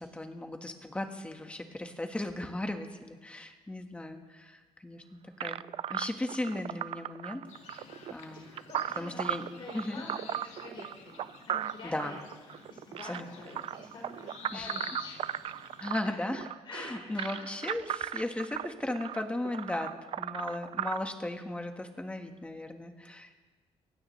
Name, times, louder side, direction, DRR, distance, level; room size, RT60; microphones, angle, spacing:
voice 1, 0.0-5.6 5.9-7.4 7.7-8.5 9.0-9.4 9.7-10.0 11.8-12.2 13.0-13.3 14.5-14.7 15.8-16.5 16.7-23.3, left 1 dB, 10° left, 5 dB, 1.4 m, -36 dB
sound 1, 5.4-21.0, right 10 dB, 55° right, 0.4 m, -37 dB
sound 2, 7.5-16.0, left 6 dB, 75° left, 1.9 m, -50 dB
voice 2, 8.3-11.2 11.5-15.4 16.0-16.2 16.6-17.5, left 2 dB, 45° left, -2 dB, 4.1 m, -47 dB
27.0 x 16.0 x 3.2 m, 1.4 s
cardioid pair, 135°, 11 cm